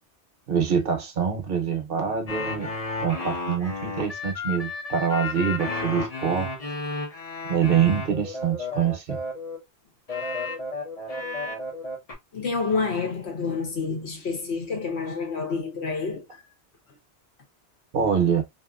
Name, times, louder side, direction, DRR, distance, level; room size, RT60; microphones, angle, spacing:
voice 1, 0.5-2.7 3.0-6.5 7.5-9.2 17.9-18.4, right 7 dB, 60° right, 0.8 m, -25 dB
sound 1, 2.3-9.6 10.1-12.1, left 3 dB, 40° left, 0.7 m, -32 dB
voice 2, 12.3-16.4, left 4 dB, 80° left, 1.3 m, -28 dB
2.8 x 2.5 x 2.3 m
omnidirectional pair, 1.1 m